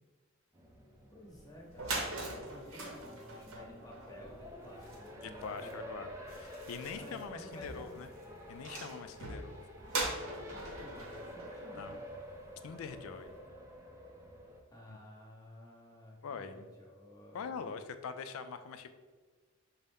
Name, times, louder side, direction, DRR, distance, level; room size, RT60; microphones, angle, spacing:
Race car auto racing, 0.5-14.6, equal, 15° right, 0.4 m, -50 dB
voice 1, 1.1-5.8 6.9-7.9 10.4-12.1 14.7-17.7, left 1 dB, 20° left, -3 dB, 1.0 m, -53 dB
sound 1, 1.4-1.5 1.7-12.5, right 2 dB, 70° right, 0.7 m, -42 dB
voice 2, 5.2-8.1 8.5-9.6 11.7-12.0 12.6-13.3 14.9-15.0 16.2-16.7 17.3-18.9, left 5 dB, 75° left, 10 dB, 0.3 m, -43 dB
5.3 x 2.0 x 3.5 m, 1.4 s
head